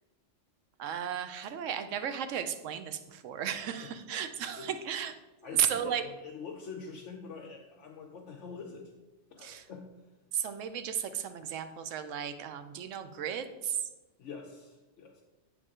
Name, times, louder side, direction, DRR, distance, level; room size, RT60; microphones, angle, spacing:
voice 1, 0.8-5.2 5.5-6.0 9.4-9.7 10.3-13.9, right 9 dB, 80° right, 10 dB, 1.0 m, -34 dB
voice 2, 5.4-8.9 9.3-9.9 14.2-15.2, left 5 dB, 70° left, 0 dB, 1.0 m, -45 dB
8.3 x 4.8 x 3.6 m, 1.1 s
omnidirectional pair, 1.3 m